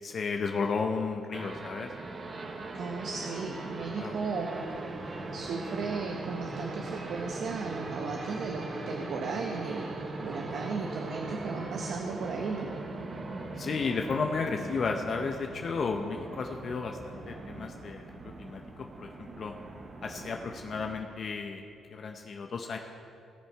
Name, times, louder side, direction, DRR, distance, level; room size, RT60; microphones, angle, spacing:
voice 1, 0.0-1.9 4.0-4.1 13.6-18.0 18.4-19.6 20.0-21.6 21.9-22.8, left 4 dB, 50° left, 3 dB, 0.7 m, -33 dB
sound 1, 1.3-21.0, right 2 dB, 35° right, 1.2 m, -40 dB
voice 2, 2.7-9.9 10.2-12.7, right 4 dB, 65° right, 3 dB, 0.9 m, -36 dB
17.5 x 7.1 x 4.6 m, 2.5 s
cardioid pair, 90°, 0 cm